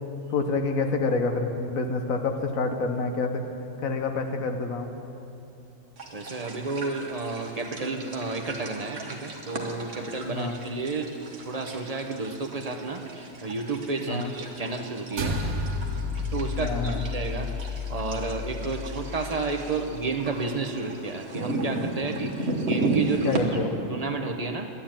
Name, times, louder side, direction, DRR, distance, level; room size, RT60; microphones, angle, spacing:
voice 1, 0.3-3.4 3.8-4.9 10.3-10.5 14.1-14.3 16.6-17.0 23.2-23.7, left 3 dB, 80° left, 6 dB, 1.4 m, -27 dB
sound 1, 6.0-23.4, right 2 dB, 55° right, 1.6 m, -35 dB
voice 2, 6.1-11.1 11.5-15.4 16.3-24.7, right 3 dB, 35° right, 4 dB, 0.8 m, -31 dB
sound 2, 15.2-19.7, left 3 dB, 80° right, 1.5 m, -32 dB
11.5 x 9.6 x 8.8 m, 2.8 s
omnidirectional pair, 1.4 m